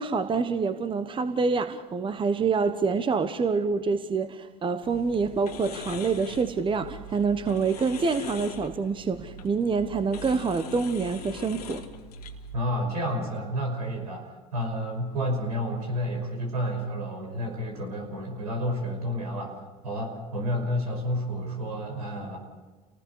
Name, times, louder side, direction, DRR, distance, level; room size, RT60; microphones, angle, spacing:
voice 1, 0.0-11.8, right 5 dB, 25° right, 10 dB, 1.2 m, -26 dB
sound 1, 4.8-12.5, left 4 dB, 85° left, 1.6 m, -41 dB
voice 2, 12.5-19.5 19.8-22.4, equal, 85° right, 2 dB, 5.8 m, -30 dB
30.0 x 19.5 x 4.8 m, 1.3 s
hypercardioid pair, 75°, 19 cm